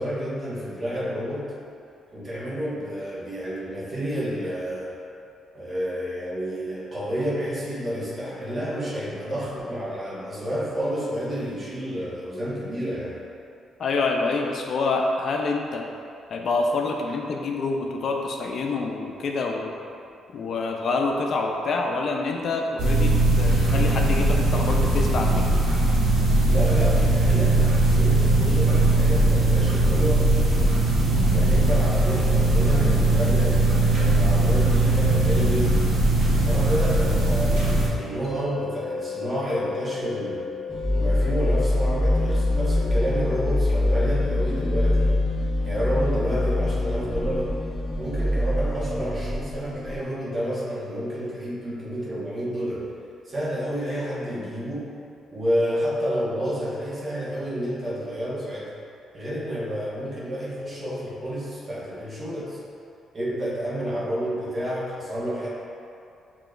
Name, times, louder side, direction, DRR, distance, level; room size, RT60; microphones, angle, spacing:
voice 1, 0.0-1.5 2.1-5.0 5.5-13.2 26.4-30.8 31.3-35.9 36.3-40.5 40.9-45.2 45.6-47.5 48.0-52.9 53.2-54.9 55.3-58.7 59.1-62.6 63.1-65.5, equal, 35° right, -7 dB, 1.3 m, -30 dB
voice 2, 13.8-15.9 16.3-19.7 20.3-25.5, left 3 dB, 60° left, 1 dB, 0.4 m, -26 dB
sound 1, 22.8-37.9, right 2 dB, 90° right, 1.0 m, -20 dB
sound 2, 38.2-51.3, left 4 dB, 55° right, 0.6 m, -39 dB
sound 3, 40.7-50.0, left 1 dB, ahead, 0.9 m, -24 dB
6.7 x 3.0 x 2.5 m, 2.6 s
cardioid pair, 90°, 0 cm